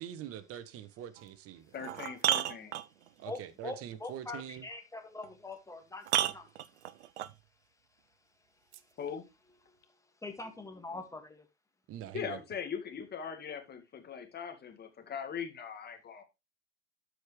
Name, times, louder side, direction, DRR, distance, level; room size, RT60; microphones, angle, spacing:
voice 1, 0.0-1.7 3.2-4.6 11.9-12.4, right 10 dB, 40° right, 1.1 m, -44 dB
sound 1, 1.2-1.3 1.7-3.2 5.2-5.3 6.0-7.4 8.7-8.8, right 12 dB, 75° right, 0.7 m, -32 dB
voice 2, 1.7-2.7 9.0-9.2 12.1-16.2, left 7 dB, 30° left, 2.1 m, -40 dB
voice 3, 3.3-6.5 10.2-11.5, left 2 dB, 10° left, 2.0 m, -43 dB
12.5 x 5.1 x 3.2 m
hypercardioid pair, 85°, 34 cm